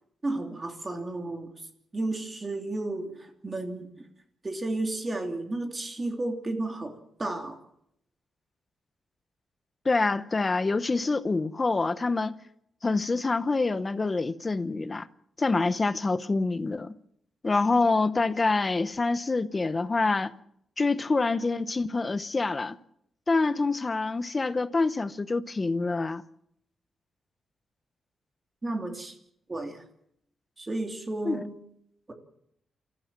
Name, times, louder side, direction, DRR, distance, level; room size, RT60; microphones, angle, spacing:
voice 1, 0.2-1.5 1.9-4.1 4.4-7.6 28.6-29.2 29.5-29.8 30.6-31.6 32.1-32.2, right 2 dB, 20° right, 3.0 m, -33 dB
voice 2, 9.8-12.4 12.8-15.1 15.4-16.9 17.4-20.3 20.8-22.8 23.3-26.2 31.2-31.4, left 3 dB, 25° left, 0.9 m, -26 dB
28.5 x 14.5 x 7.5 m
wide cardioid pair, 160°, 0 cm